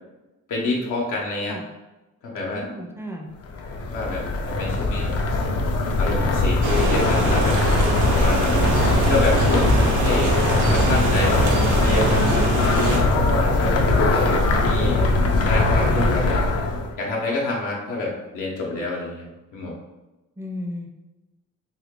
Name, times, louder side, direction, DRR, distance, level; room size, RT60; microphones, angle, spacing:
voice 1, 0.5-1.6 2.2-2.6 3.9-5.4 6.0-7.6 8.2-8.6 9.1-9.7 10.0-10.4 10.7-11.4 11.8-12.3 12.6-13.9 14.1-15.0 15.4-16.4 17.0-19.7, left 2 dB, 85° left, -3 dB, 0.9 m, -27 dB
voice 2, 2.5-3.3 20.4-20.9, left 1 dB, 10° right, 1 dB, 0.5 m, -33 dB
sound 1, 3.5-16.9, left 2 dB, 55° left, 0.5 m, -21 dB
sound 2, 6.6-13.0, right 3 dB, 75° right, 0.8 m, -24 dB
2.8 x 2.5 x 3.6 m, 1.1 s
cardioid pair, 90°, 30 cm